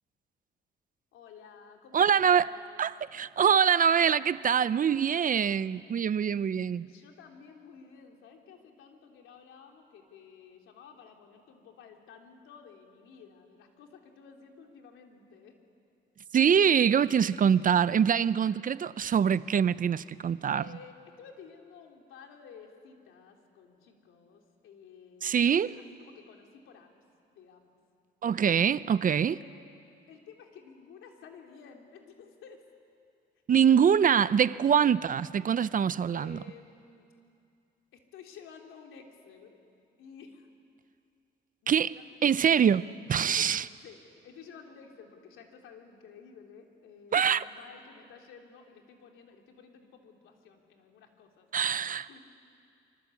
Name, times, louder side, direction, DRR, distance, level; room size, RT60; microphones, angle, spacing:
voice 1, 1.1-2.8 6.8-15.5 20.5-26.9 27.3-27.8 29.1-29.7 30.1-32.6 33.5-33.9 36.1-37.0 37.9-39.6 40.0-40.5 41.6-42.4 43.3-51.5 52.1-52.2, left 6 dB, 85° left, 3.3 m, -52 dB
voice 2, 1.9-2.5 2.8-6.9 16.3-20.6 25.2-25.7 28.2-29.3 33.5-36.4 41.7-42.0 42.2-43.6 47.1-47.4 51.5-52.1, right 8 dB, 45° right, 0.6 m, -24 dB
26.0 x 25.0 x 8.4 m
cardioid pair, 90°, 20 cm